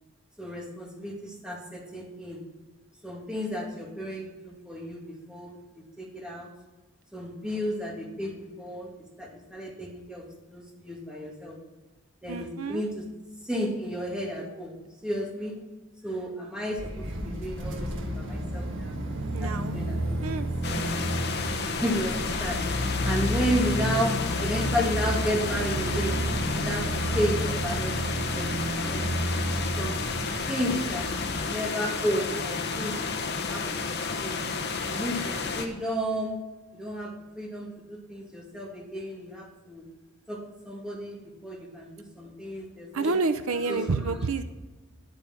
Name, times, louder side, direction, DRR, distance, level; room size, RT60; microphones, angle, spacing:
voice 1, 0.4-2.4 3.0-6.5 7.1-8.9 9.2-11.6 12.2-13.0 13.4-14.7 15.0-15.6 16.0-19.0 19.4-20.8 21.6-22.6 23.0-26.9 27.1-29.1 29.8-30.0 30.5-34.4 34.8-36.4 36.7-39.8 40.3-40.4 40.6-43.2 43.6-44.2, equal, 5° right, -1 dB, 2.3 m, -33 dB
voice 2, 12.3-12.9 19.3-19.8 20.2-20.5 42.9-44.4, right 3 dB, 80° right, 11 dB, 0.7 m, -28 dB
sound 1, 16.8-31.5, equal, 60° right, 1.8 m, -31 dB
sound 2, 20.6-35.7, left 4 dB, 50° left, 1.1 m, -31 dB
10.5 x 9.3 x 6.2 m, 1.2 s
head